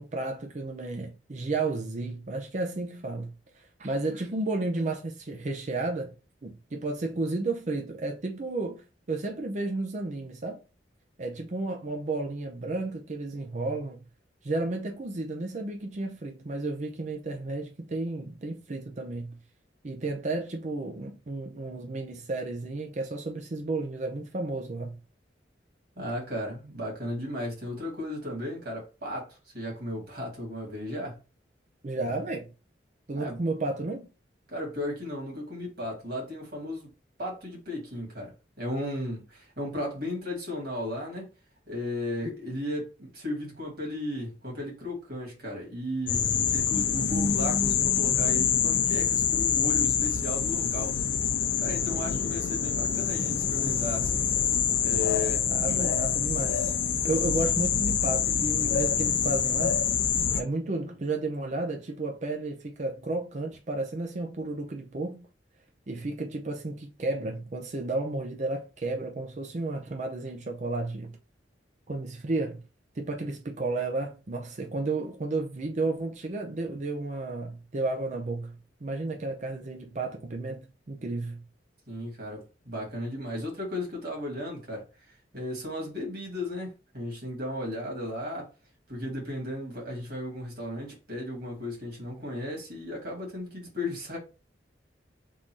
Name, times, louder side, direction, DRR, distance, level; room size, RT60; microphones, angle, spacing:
voice 1, 0.0-6.1 6.4-10.6 11.2-14.0 14.4-19.4 19.8-25.0 31.8-32.5 33.1-34.1 55.5-56.8 57.0-59.8 60.4-65.3 65.9-71.2 71.9-72.6 73.0-81.4, right 2 dB, 40° right, 0.6 m, -32 dB
voice 2, 26.0-31.2 33.1-33.4 34.5-36.9 37.2-41.3 41.7-51.0 51.6-54.3 54.8-55.9 81.9-88.5 88.9-94.2, left 1 dB, 55° right, 2.0 m, -35 dB
sound 1, 46.1-60.4, left 7 dB, 80° left, 0.6 m, -26 dB
3.7 x 2.6 x 4.5 m
head